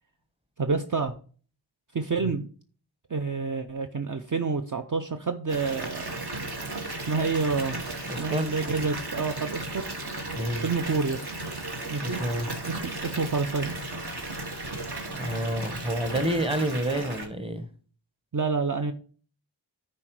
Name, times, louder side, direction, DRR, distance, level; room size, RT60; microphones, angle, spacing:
voice 1, 0.6-1.1 1.9-2.5 3.1-6.2 7.1-7.8 8.2-9.9 10.6-11.2 11.9-12.2 12.7-13.7 16.5-16.6 18.3-18.9, right 4 dB, 45° right, 0.6 m, -28 dB
Water tap faucet / Bathtub (filling or washing) / Fill (with liquid), 5.5-17.3, right 2 dB, 60° right, 1.6 m, -35 dB
voice 2, 8.1-8.5 10.4-10.6 12.0-12.5 15.1-17.7, right 1 dB, 10° right, 1.1 m, -29 dB
9.8 x 4.5 x 4.7 m
wide cardioid pair, 50°, 44 cm